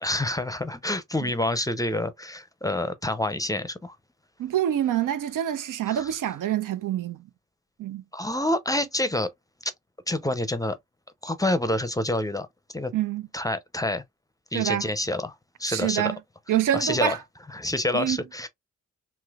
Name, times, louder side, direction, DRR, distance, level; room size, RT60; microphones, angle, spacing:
voice 1, 0.0-4.0 5.9-6.1 8.1-9.3 9.6-9.7 10.1-10.8 11.2-12.5 12.7-12.9 13.3-14.0 14.5-16.1 16.7-17.2 17.5-18.5, left 1 dB, 10° left, 0.5 m, -27 dB
voice 2, 4.4-7.2 7.8-8.0 12.9-13.2 14.5-14.9 15.7-16.2 16.5-17.2 17.9-18.2, right 11 dB, 75° right, 0.5 m, -26 dB
3.1 x 2.9 x 2.3 m
cardioid pair, 60°, 32 cm